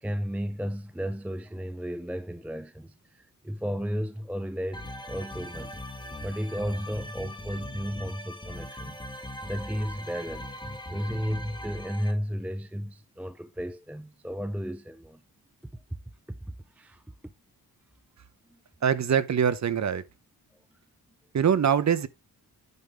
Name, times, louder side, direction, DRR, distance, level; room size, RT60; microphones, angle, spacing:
voice 1, 0.0-5.8 6.2-9.0 9.4-15.2 15.7-15.8 16.3-16.4 16.7-17.0 18.5-18.6, equal, 5° right, 0.5 m, -34 dB
sound 1, 4.7-12.1, left 1 dB, 10° left, 1.8 m, -40 dB
voice 2, 18.8-20.0 21.3-22.1, right 8 dB, 50° right, 0.8 m, -23 dB
9.6 x 5.4 x 3.4 m
wide cardioid pair, 115°, 37 cm